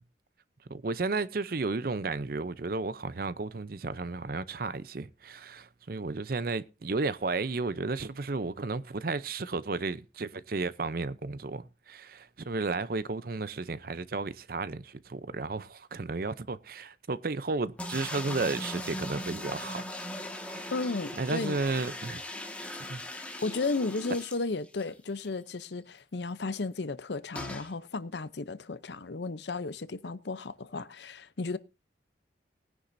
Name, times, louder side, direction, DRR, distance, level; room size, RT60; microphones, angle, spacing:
voice 1, 0.7-19.8 20.5-20.7 21.2-22.2 22.9-23.0, right 3 dB, 50° right, 0.6 m, -33 dB
sound 1, 17.8-24.9 25.3-25.4 25.6-25.7 27.3-27.7, left 1 dB, 5° left, 1.6 m, -39 dB
voice 2, 20.7-21.6 23.4-31.6, left 3 dB, 65° left, 0.7 m, -34 dB
19.0 x 10.0 x 2.6 m
head